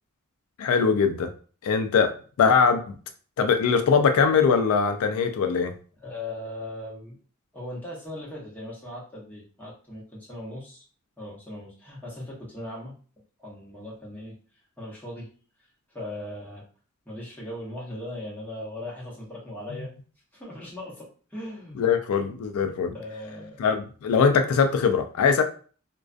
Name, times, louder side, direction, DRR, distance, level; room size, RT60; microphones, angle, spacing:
voice 1, 0.6-1.3 1.6-2.1 2.4-2.9 3.4-5.7 21.8-22.9 23.6-25.4, left 6 dB, 85° left, 7 dB, 0.3 m, -21 dB
voice 2, 6.0-7.2 7.5-10.9 11.2-12.9 13.4-14.4 14.8-15.3 15.9-16.6 17.0-19.9 20.3-22.0 22.9-23.7, left 1 dB, 10° left, -5 dB, 0.9 m, -38 dB
2.3 x 2.2 x 2.4 m, 0.40 s
head